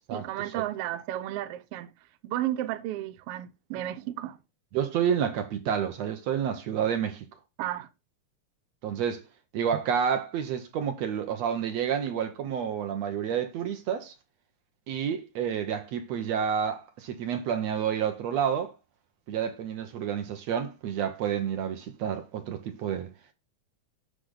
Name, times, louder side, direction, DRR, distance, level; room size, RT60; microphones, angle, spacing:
voice 1, 0.1-1.9 2.2-4.4 7.6-7.9 9.7-9.8, right 14 dB, 80° right, 1.3 m, -33 dB
voice 2, 4.7-7.3 8.8-9.2 9.5-14.1 14.9-18.7 19.3-23.1, right 8 dB, 65° right, 2.1 m, -29 dB
10.0 x 6.7 x 3.9 m
omnidirectional pair, 3.5 m